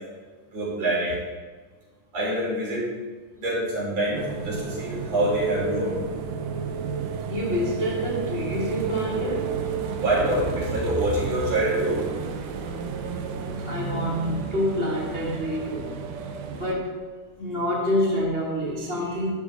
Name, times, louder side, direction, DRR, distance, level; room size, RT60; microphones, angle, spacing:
voice 1, 0.5-1.2 2.1-2.9 3.4-6.0 10.0-12.0, right 1 dB, 50° right, -5 dB, 5.7 m, -25 dB
sound 1, 4.1-16.8, right 5 dB, 75° right, 2.5 m, -32 dB
voice 2, 7.3-9.6 13.6-16.0 16.6-17.1 17.4-19.3, equal, 20° left, -5 dB, 1.7 m, -27 dB
12.5 x 12.5 x 4.0 m, 1.4 s
omnidirectional pair, 3.8 m